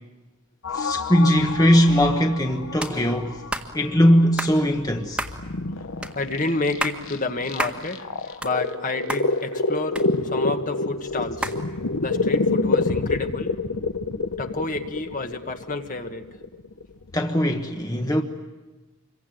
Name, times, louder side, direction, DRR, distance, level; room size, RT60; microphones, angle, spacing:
sound 1, 0.6-4.1 4.5-17.2, left 3 dB, 65° left, 0.9 m, -28 dB
voice 1, 0.7-3.4 3.7-5.2 17.1-18.2, equal, 15° left, 1.3 m, -20 dB
sound 2, 2.8-3.0 3.5-3.7 4.4-4.6 5.2-5.4 6.0-6.1 6.6-7.0 7.6-7.8 8.2-8.8 9.1-9.2 10.0-10.5 11.4-11.6, right 1 dB, 5° right, 1.6 m, -29 dB
voice 2, 6.1-11.5 12.0-13.6 14.4-16.4, left 3 dB, 35° left, 1.6 m, -29 dB
27.0 x 23.0 x 9.3 m
head